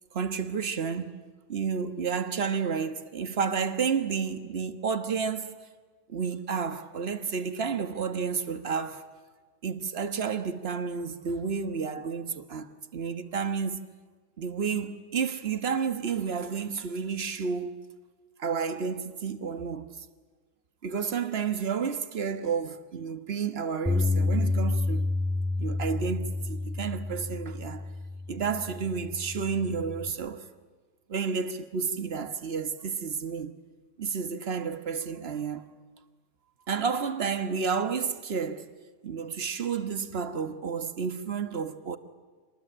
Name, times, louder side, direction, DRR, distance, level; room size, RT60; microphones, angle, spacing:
voice 1, 0.1-1.1 1.5-5.5 6.1-9.0 9.6-13.8 14.4-17.8 18.4-20.0 20.8-25.1 25.6-27.9 28.3-30.5 31.1-33.5 34.0-35.7 36.7-38.7 39.0-42.0, right 6 dB, 55° right, 1.6 m, -31 dB
Bass guitar, 23.9-30.1, left 2 dB, 5° right, 1.8 m, -30 dB
26.5 x 20.5 x 9.9 m
omnidirectional pair, 1.3 m